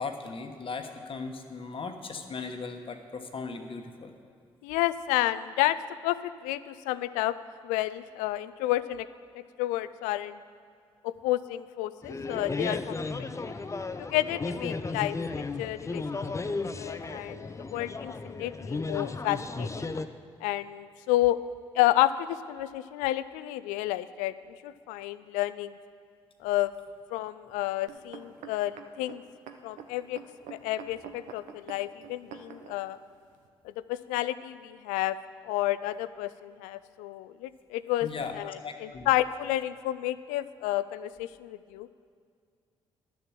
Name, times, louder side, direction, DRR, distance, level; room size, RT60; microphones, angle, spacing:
voice 1, 0.0-4.1 38.0-39.1, left 4 dB, 40° left, 6 dB, 1.1 m, -38 dB
voice 2, 4.6-5.8 6.0-7.4 7.6-9.1 9.6-10.4 11.0-13.3 14.1-16.2 16.8-19.9 20.4-21.4 21.7-24.3 24.6-25.8 26.4-26.7 27.1-29.2 29.6-30.2 30.5-33.0 33.8-35.2 35.4-41.9, left 15 dB, 75° left, 15 dB, 0.4 m, -30 dB
sound 1, 12.0-20.1, left 3 dB, 20° left, 0.6 m, -34 dB
sound 2, 27.9-32.8 33.4-33.5, right 8 dB, 70° right, 0.8 m, -46 dB
11.5 x 6.9 x 7.3 m, 2.2 s
hypercardioid pair, 45°, 13 cm